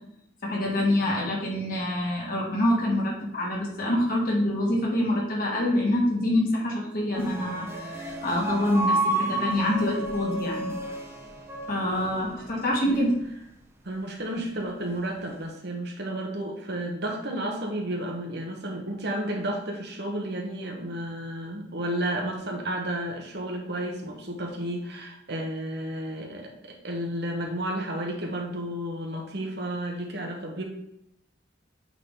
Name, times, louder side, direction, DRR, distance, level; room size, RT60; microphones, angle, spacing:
voice 1, 0.4-10.8 11.7-13.2, left 1 dB, 50° left, -3 dB, 2.2 m, -26 dB
sound 1, 7.1-12.5, right 2 dB, 15° right, 0.9 m, -31 dB
voice 2, 13.8-30.6, right 1 dB, 60° right, 1 dB, 1.3 m, -32 dB
8.5 x 4.0 x 3.8 m, 0.78 s
head